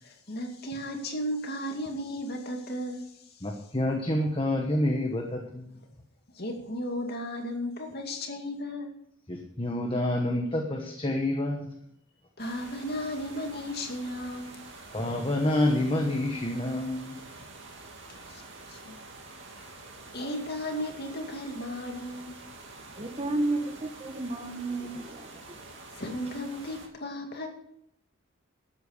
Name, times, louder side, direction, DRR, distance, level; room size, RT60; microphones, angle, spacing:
voice 1, 0.0-3.1 6.3-8.9 12.4-14.6 18.3-18.4 18.7-18.9 19.5-19.7 20.1-22.4 26.0-27.5, left 1 dB, 50° left, 2.4 m, -35 dB
voice 2, 3.4-5.8 9.3-11.7 14.9-17.2, left 1 dB, 25° left, 1.2 m, -28 dB
sound 1, 12.4-26.9, right 3 dB, 60° right, 2.5 m, -47 dB
voice 3, 22.9-25.6, right 2 dB, 30° right, 1.2 m, -32 dB
12.5 x 8.5 x 6.7 m
head